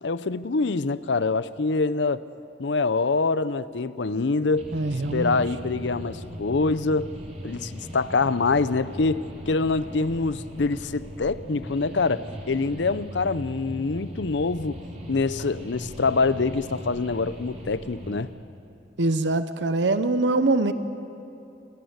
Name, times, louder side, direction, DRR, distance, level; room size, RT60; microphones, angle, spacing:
voice 1, 0.0-2.2 2.6-4.7 5.1-7.1 7.4-14.8 15.1-18.3, left 3 dB, 75° left, 16 dB, 0.7 m, -25 dB
sound 1, 4.5-18.2, equal, 35° right, 3.2 m, -39 dB
voice 2, 4.7-5.4 19.0-20.7, right 2 dB, 75° right, 11 dB, 0.9 m, -23 dB
28.5 x 17.0 x 8.1 m, 2.8 s
head